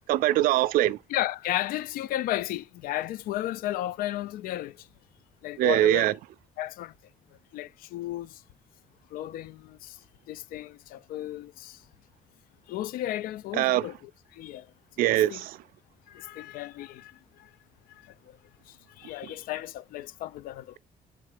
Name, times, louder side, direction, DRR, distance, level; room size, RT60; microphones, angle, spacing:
voice 1, 0.1-1.0 5.6-6.1 13.5-13.9 15.0-15.6, right 14 dB, 90° right, 0.4 m, -22 dB
voice 2, 1.1-4.9 5.4-6.1 6.6-6.9 7.5-8.4 9.1-10.0 10.3-11.8 12.7-14.7 15.1-15.4 16.1-17.5 17.9-18.1 18.7-20.7, left 14 dB, 85° left, 0.4 m, -34 dB
7.4 x 3.6 x 4.9 m
cardioid pair, 105°, 14 cm